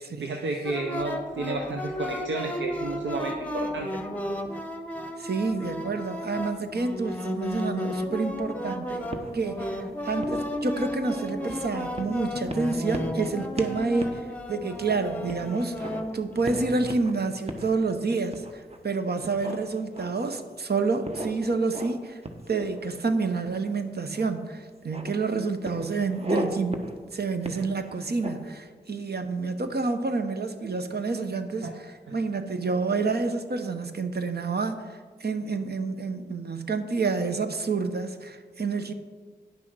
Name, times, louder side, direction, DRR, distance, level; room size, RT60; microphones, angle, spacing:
voice 1, 0.2-3.9 31.6-31.7, right 3 dB, 90° right, 3 dB, 0.8 m, -31 dB
sound 1, 0.6-17.0, left 1 dB, 10° left, 1.2 m, -33 dB
voice 2, 5.2-9.0 9.3-9.8 10.0-22.2 22.5-38.9, right 4 dB, 60° right, 8 dB, 1.0 m, -29 dB
sound 2, 9.1-9.8 10.2-11.5 12.0-12.2 12.5-13.3 13.6-13.7 14.0-14.2 14.6-14.7 15.3-16.0 16.4-17.1 17.5-17.7 18.3-18.8 19.2-20.3 21.0-22.0 22.2-23.1 24.1-24.3 24.6-25.1 25.6-26.5 26.7-26.9 27.4-28.5, right 1 dB, 35° right, 1.3 m, -36 dB
9.8 x 6.3 x 6.2 m, 1.5 s
cardioid pair, 55°, 19 cm